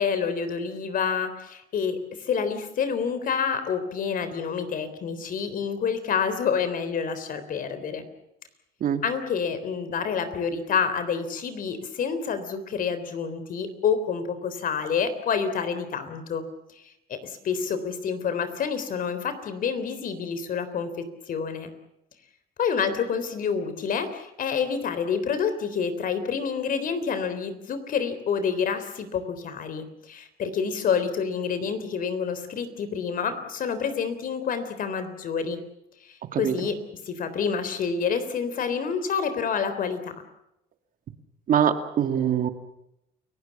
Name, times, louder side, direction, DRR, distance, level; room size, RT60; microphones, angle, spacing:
voice 1, 0.0-8.1 9.0-16.4 16.7-16.8 17.1-21.7 22.6-35.6 36.0-36.8 37.1-40.1, left 6 dB, 55° left, 11 dB, 3.7 m, -28 dB
voice 2, 41.5-42.5, right 9 dB, 55° right, 8 dB, 2.1 m, -23 dB
29.5 x 17.0 x 7.3 m, 0.83 s
cardioid pair, 110°, 17 cm